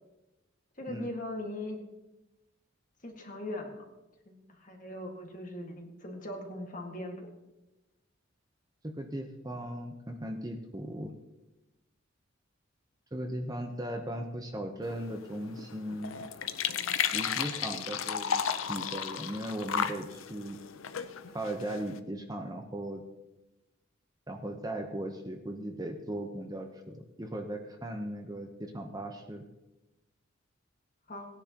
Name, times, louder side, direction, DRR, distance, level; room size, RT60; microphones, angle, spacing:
voice 1, 0.8-1.8 3.0-3.9 4.3-7.3 31.1-31.3, left 1 dB, 40° left, 2 dB, 1.8 m, -40 dB
voice 2, 8.8-11.1 13.1-16.2 17.1-18.4 18.7-20.6 21.3-23.0 24.3-29.5, right 1 dB, 20° right, 4 dB, 0.8 m, -38 dB
sound 1, 14.8-22.0, left 8 dB, 80° left, 0.7 m, -34 dB
18.5 x 10.0 x 3.0 m, 0.98 s
head